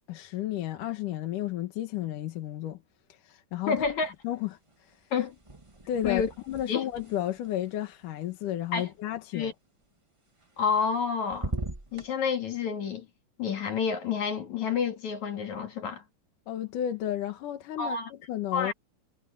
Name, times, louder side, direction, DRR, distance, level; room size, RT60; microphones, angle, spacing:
voice 1, 0.1-2.8 3.1-3.7 4.2-5.0 5.9-9.5 16.5-18.7, left 12 dB, 80° left, 2.9 m, -33 dB
voice 2, 3.7-4.1 5.1-5.4 6.0-6.3 6.7-6.9 8.7-8.9 9.3-9.5 10.6-11.6 11.9-13.1 13.4-16.0 17.8-18.1 18.5-18.7, left 6 dB, 65° left, 3.7 m, -29 dB
sound 1, 3.7-4.4 4.7-8.8 10.4-11.0 11.3-12.1, right 1 dB, 15° right, 1.0 m, -41 dB
omnidirectional pair, 3.7 m